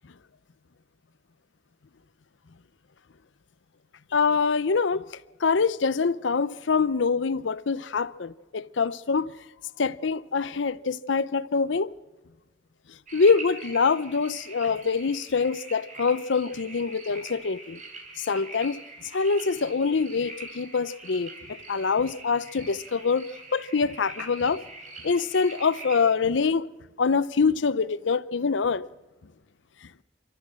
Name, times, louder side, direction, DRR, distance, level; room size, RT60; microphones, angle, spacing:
voice 1, 4.1-5.0 5.4-9.3 9.8-11.9 13.1-17.8 18.3-18.8 19.1-21.3 21.7-23.3 23.5-24.6 25.0-26.7 27.0-28.8, left 5 dB, 70° left, 0.6 m, -25 dB
sound 1, 13.1-26.0, right 2 dB, 40° right, 4.0 m, -43 dB
29.0 x 13.5 x 7.4 m
head